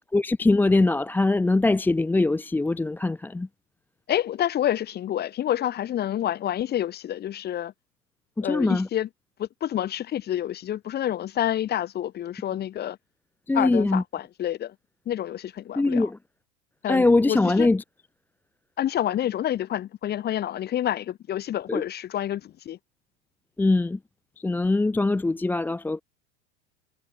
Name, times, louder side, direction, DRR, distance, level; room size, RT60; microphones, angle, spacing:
voice 1, 0.1-3.5 8.4-8.9 13.5-14.0 15.8-16.2 16.9-17.8 21.7-21.8 23.6-24.0 24.4-26.0, left 2 dB, 5° left, 1.2 m, -22 dB
voice 2, 4.1-7.7 8.4-9.1 9.4-13.0 13.5-14.7 15.1-16.1 16.8-17.7 18.8-22.8, left 11 dB, 25° left, 6.1 m, -28 dB
supercardioid pair, 155°, 37 cm